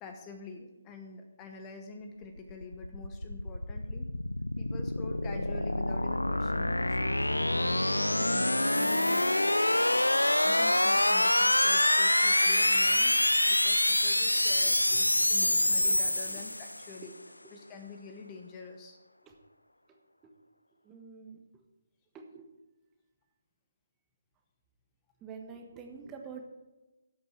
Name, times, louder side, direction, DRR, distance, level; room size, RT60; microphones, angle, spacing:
voice 1, 0.0-4.1 4.6-9.9 10.4-13.1 13.5-17.1 17.5-19.0, left 4 dB, 20° left, 5 dB, 1.0 m, -46 dB
sound 1, 2.4-16.9, left 1 dB, 90° left, 0.4 m, -26 dB
voice 2, 14.6-15.0 15.5-15.6 19.2-19.3 20.2-20.3 20.8-21.4 22.1-22.5 25.2-26.4, right 5 dB, 15° right, 3 dB, 1.4 m, -47 dB
13.5 x 8.3 x 4.6 m, 1.1 s
figure-of-eight pair, 140°, 0 cm